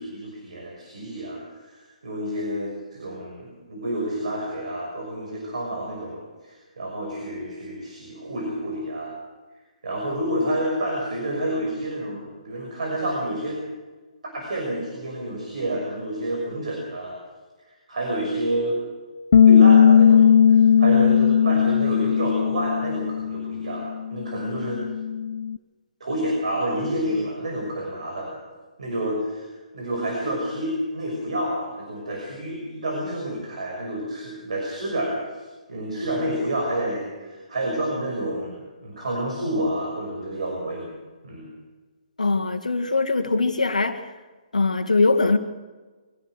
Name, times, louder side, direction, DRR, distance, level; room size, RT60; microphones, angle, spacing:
voice 1, 0.0-9.1 9.8-13.6 14.2-17.2 17.9-18.8 19.5-24.8 26.0-28.4 28.8-35.3 35.7-40.9 41.2-41.5, right 1 dB, 60° right, 6.1 m, -29 dB
Bass guitar, 19.3-25.6, left 8 dB, 60° left, 0.5 m, -17 dB
voice 2, 42.2-44.1 44.5-45.4, left 3 dB, 75° left, 1.9 m, -21 dB
24.0 x 17.0 x 6.4 m
figure-of-eight pair, 130°, 4 cm